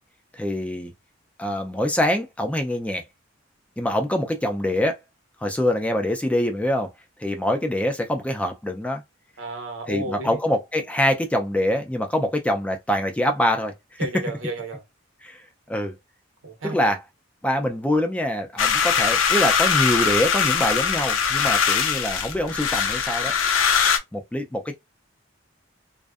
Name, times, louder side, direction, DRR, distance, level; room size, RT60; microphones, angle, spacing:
voice 1, 0.3-0.9 1.4-3.0 3.8-5.0 5.4-6.9 7.2-9.0 9.9-13.7 14.1-14.2 15.2-15.4 15.7-15.9 16.6-17.0 17.4-23.3 24.1-24.8, left 1 dB, 5° left, 0.3 m, -24 dB
voice 2, 9.4-10.4 14.0-14.8 16.4-16.9, right 2 dB, 90° right, 0.8 m, -32 dB
sound 1, 18.6-24.0, left 7 dB, 85° left, 0.5 m, -21 dB
2.5 x 2.1 x 2.3 m
head